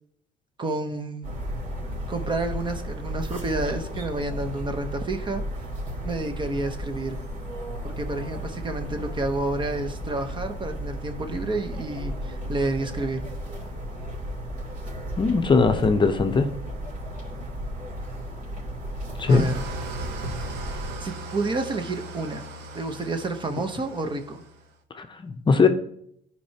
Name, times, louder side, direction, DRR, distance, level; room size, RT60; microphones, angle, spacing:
voice 1, 0.6-1.3 2.1-5.4 6.0-7.2 7.8-13.3 19.3-19.6 21.0-22.4 22.7-24.4, right 2 dB, 30° right, 7 dB, 0.9 m, -30 dB
sound 1, 1.2-20.9, equal, 50° right, 3.3 m, -34 dB
voice 2, 15.2-16.5 19.2-19.5 24.9-25.7, left 4 dB, 30° left, 6 dB, 0.7 m, -20 dB
Engine starting / Idling, 19.3-24.7, right 2 dB, 90° right, 1.0 m, -38 dB
13.5 x 4.6 x 2.8 m, 0.70 s
cardioid pair, 110°, 17 cm